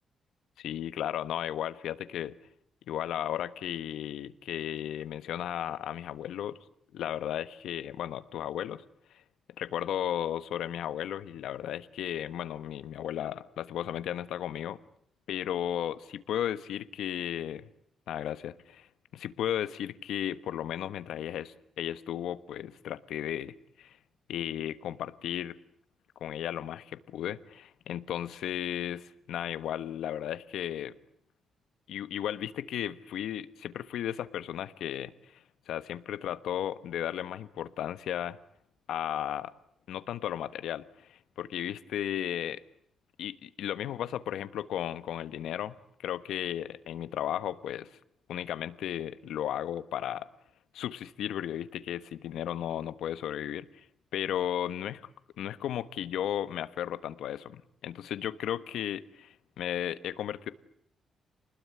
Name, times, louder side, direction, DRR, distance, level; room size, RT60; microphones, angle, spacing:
voice 1, 0.6-2.3 2.9-6.6 6.9-8.8 9.6-14.8 15.3-17.7 18.1-18.9 19.1-24.0 24.3-25.6 26.2-30.9 31.9-38.4 38.9-39.5 39.9-42.6 43.2-45.8 46.0-47.9 48.3-50.3 50.7-53.8 54.1-55.0 55.4-60.5, left 11 dB, 85° left, 14 dB, 1.3 m, -35 dB
29.0 x 20.5 x 9.6 m, 0.70 s
wide cardioid pair, 180°, 0 cm